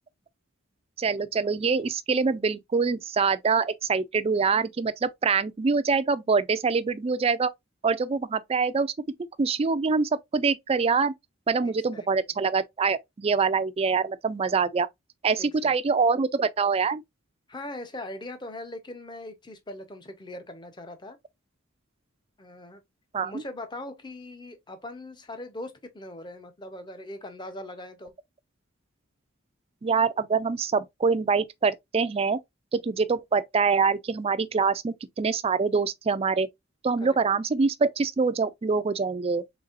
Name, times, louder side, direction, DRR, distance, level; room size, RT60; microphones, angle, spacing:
voice 1, 1.0-7.5 7.8-8.9 9.4-11.1 11.5-14.9 15.2-17.0 23.1-23.3 29.8-32.4 32.7-36.5 36.8-39.4, right 5 dB, 30° right, 0.3 m, -25 dB
voice 2, 11.6-12.1 15.4-15.9 17.5-21.2 22.4-22.8 23.2-28.1 37.0-37.2, left 1 dB, 20° left, 0.7 m, -40 dB
4.0 x 3.7 x 2.5 m
head